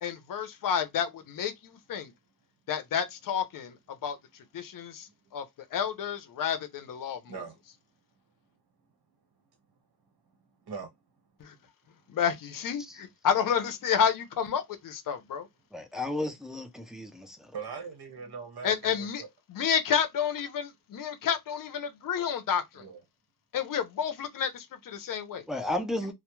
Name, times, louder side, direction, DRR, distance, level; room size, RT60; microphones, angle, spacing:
voice 1, 0.0-2.1 2.7-3.8 4.0-4.2 4.5-5.4 5.7-7.4 11.4-11.5 12.1-15.5 18.6-19.2 19.5-22.8 23.5-25.4, left 7 dB, 60° left, 0.5 m, -30 dB
voice 2, 7.3-7.6 10.6-10.9 16.9-17.0 17.5-19.3 22.7-23.0, right 5 dB, 85° right, 1.0 m, -41 dB
voice 3, 15.7-17.5 25.5-26.1, left 1 dB, ahead, 0.3 m, -33 dB
2.2 x 2.1 x 2.9 m
wide cardioid pair, 160°, 37 cm